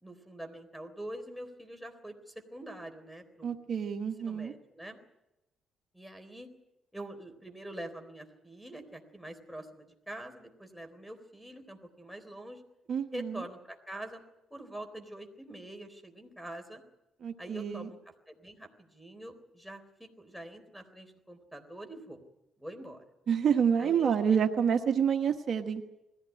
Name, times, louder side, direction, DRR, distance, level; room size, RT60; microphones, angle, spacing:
voice 1, 0.0-3.5 4.2-5.0 5.9-6.5 6.9-12.6 13.1-14.2 14.5-16.8 17.4-18.0 18.3-22.2 22.6-23.0 23.8-24.1 24.4-24.5, right 1 dB, ahead, 9 dB, 3.9 m, -45 dB
voice 2, 3.4-4.5 12.9-13.4 17.2-17.9 23.3-25.8, right 7 dB, 60° right, 6 dB, 1.3 m, -28 dB
21.0 x 16.0 x 9.9 m, 0.93 s
cardioid pair, 90°, 0 cm